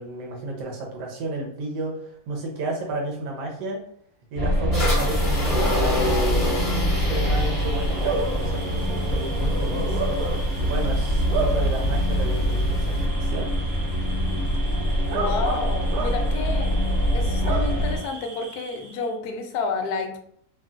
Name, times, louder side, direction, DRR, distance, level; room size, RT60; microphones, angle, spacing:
voice 1, 0.0-3.8 4.3-10.0 10.6-13.5, right 2 dB, 75° right, 0 dB, 1.4 m, -32 dB
sound 1, 4.3-18.0, equal, 15° right, 0.8 m, -24 dB
sound 2, 4.7-13.1, left 1 dB, 25° left, 0.9 m, -30 dB
Bark / Cricket, 5.8-19.1, right 3 dB, 90° right, 1.3 m, -34 dB
voice 2, 15.1-16.8 17.1-20.2, left 4 dB, 70° left, 5 dB, 0.9 m, -30 dB
3.3 x 2.4 x 2.4 m, 0.65 s
omnidirectional pair, 1.9 m